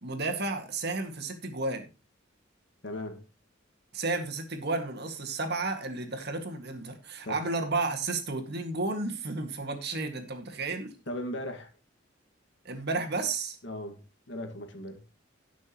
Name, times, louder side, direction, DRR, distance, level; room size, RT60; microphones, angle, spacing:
voice 1, 0.0-1.9 3.9-10.9 12.6-13.6, right 3 dB, 55° right, 2.0 m, -32 dB
voice 2, 2.8-3.2 7.2-7.4 11.1-11.7 13.6-14.0 14.3-15.0, left 1 dB, 65° left, 1.9 m, -37 dB
18.5 x 6.2 x 3.0 m
head